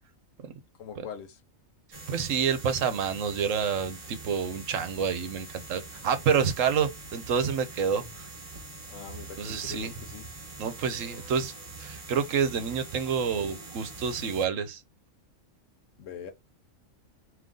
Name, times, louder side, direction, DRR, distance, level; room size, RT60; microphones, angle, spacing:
voice 1, 0.8-1.4 8.9-10.3 16.0-16.3, left 7 dB, 75° left, 1.2 m, -42 dB
sound 1, 1.9-14.5, right 3 dB, 30° right, 1.1 m, -44 dB
voice 2, 2.1-8.0 9.4-9.9 10.6-14.8, right 6 dB, 75° right, 1.1 m, -28 dB
3.8 x 3.1 x 3.6 m
omnidirectional pair, 1.4 m